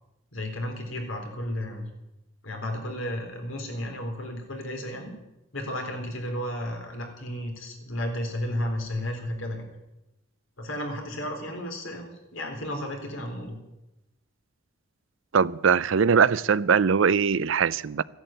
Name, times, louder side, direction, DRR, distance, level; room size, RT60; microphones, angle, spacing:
voice 1, 0.3-1.9 2.4-5.1 5.5-9.6 10.6-13.6, left 1 dB, 80° left, 3.8 m, -33 dB
voice 2, 15.3-18.0, right 6 dB, 75° right, 0.5 m, -21 dB
14.5 x 11.0 x 9.0 m
head